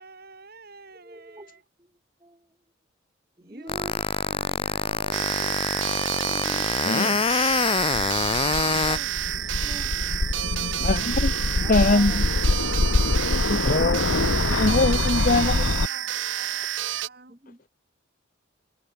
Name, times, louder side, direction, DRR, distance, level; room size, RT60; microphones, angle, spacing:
voice 1, 0.0-1.6 3.4-5.7 7.7-9.9 11.7-11.9 12.6-13.1 14.1-17.4, right 3 dB, 50° right, 7.0 m, -47 dB
voice 2, 0.9-1.9 2.2-2.6 3.4-4.0 5.1-5.5 6.2-6.8 8.8-9.0 9.6-9.9 10.4-10.9 11.6-12.3 12.6-13.2 14.1-14.6 15.3-15.7 17.3-17.6, right 1 dB, 20° right, 4.7 m, -44 dB
sound 1, 3.7-9.0, left 5 dB, 30° left, 0.5 m, -25 dB
sound 2, 5.1-17.1, right 12 dB, 70° right, 0.7 m, -29 dB
voice 3, 6.9-7.2 10.8-11.3 11.7-12.2 13.5-14.1 14.6-15.7, left 2 dB, 45° left, 0.9 m, -22 dB
sound 3, 7.5-15.9, left 3 dB, 85° left, 1.0 m, -25 dB
head